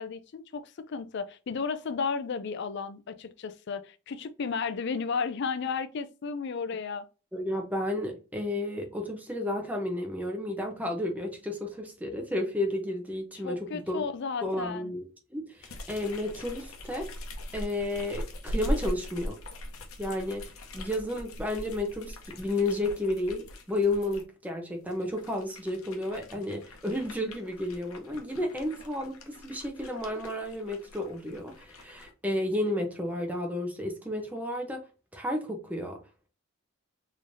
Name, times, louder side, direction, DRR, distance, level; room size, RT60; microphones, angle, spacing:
voice 1, 0.0-7.1 13.4-14.9, left 5 dB, 55° left, 0.4 m, -33 dB
voice 2, 7.3-14.0 14.4-15.0 15.3-17.1 17.5-19.4 20.0-20.5 20.7-34.8 35.1-36.0, left 1 dB, 10° right, 0.7 m, -32 dB
sound 1, 15.6-24.2 24.8-32.1, equal, 85° left, 0.8 m, -40 dB
3.8 x 3.2 x 2.6 m
head